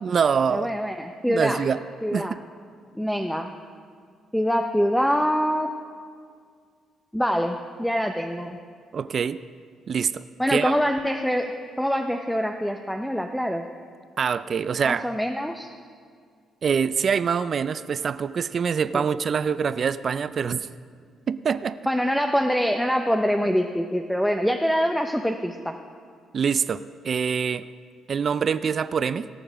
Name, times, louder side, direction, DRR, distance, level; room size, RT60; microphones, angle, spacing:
voice 1, 0.0-0.7 1.3-1.8 2.1-2.4 8.9-9.4 9.9-10.7 14.2-15.1 16.6-20.7 21.3-21.8 26.3-27.7 28.1-29.3, right 6 dB, 50° right, 15 dB, 0.3 m, -25 dB
voice 2, 0.5-1.6 2.0-2.4 3.0-3.5 4.3-5.7 7.1-8.6 10.4-13.6 14.8-15.7 18.9-19.0 21.9-25.8, equal, ahead, 5 dB, 0.6 m, -24 dB
18.0 x 7.1 x 4.9 m, 2.1 s
cardioid pair, 90°, 0 cm